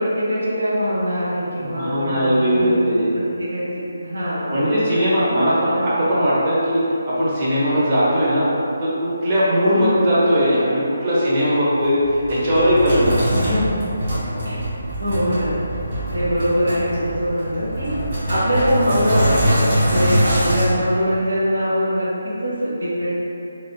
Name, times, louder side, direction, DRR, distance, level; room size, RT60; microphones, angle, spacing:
voice 1, 0.0-2.9 3.1-5.2 5.7-5.9 9.7-10.1 13.3-13.8 14.4-14.7 15.0-15.6 16.1-18.0 18.3-19.6 19.9-23.1, equal, 90° right, -8 dB, 1.0 m, -23 dB
voice 2, 1.5-3.1 4.5-8.5 8.8-13.2 14.3-14.6 19.9-20.1, equal, 30° right, -9 dB, 0.7 m, -19 dB
Sink (filling or washing), 11.8-20.6, equal, 45° right, 1.3 m, -23 dB
3.2 x 2.4 x 2.7 m, 2.8 s
hypercardioid pair, 170°, 0 cm